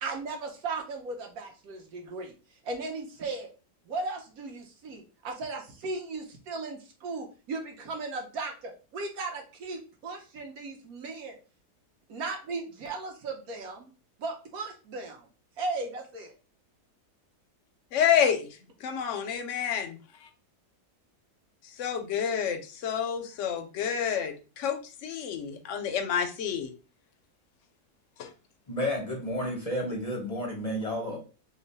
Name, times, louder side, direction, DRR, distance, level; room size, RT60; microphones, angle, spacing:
voice 1, 0.0-3.5 3.8-11.4 12.1-13.9 14.2-15.3 15.6-16.3, right 3 dB, 65° right, 1.2 m, -36 dB
voice 2, 17.9-20.3 21.8-26.7 28.2-28.3, left 8 dB, 70° left, 0.7 m, -29 dB
voice 3, 28.7-31.2, left 1 dB, 40° left, 0.5 m, -31 dB
3.0 x 2.2 x 3.9 m
omnidirectional pair, 1.7 m